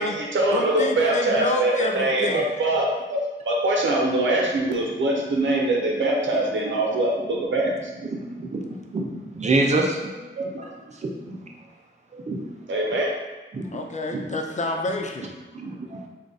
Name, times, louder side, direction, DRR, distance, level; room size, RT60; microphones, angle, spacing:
voice 1, 0.0-3.2 3.4-8.7 10.4-10.5 12.7-13.1, right 1 dB, 70° right, -2 dB, 0.8 m, -23 dB
voice 2, 0.5-2.5 13.7-15.3, left 2 dB, 35° left, 3 dB, 0.4 m, -28 dB
voice 3, 8.0-8.6 8.9-9.1 9.3-10.2 10.5-10.6 11.0-11.4 12.1-12.5 13.5-13.7 14.1-14.3 15.5-16.1, right 2 dB, 35° right, 0 dB, 0.5 m, -26 dB
3.7 x 2.4 x 4.0 m, 1.2 s
wide cardioid pair, 140°, 20 cm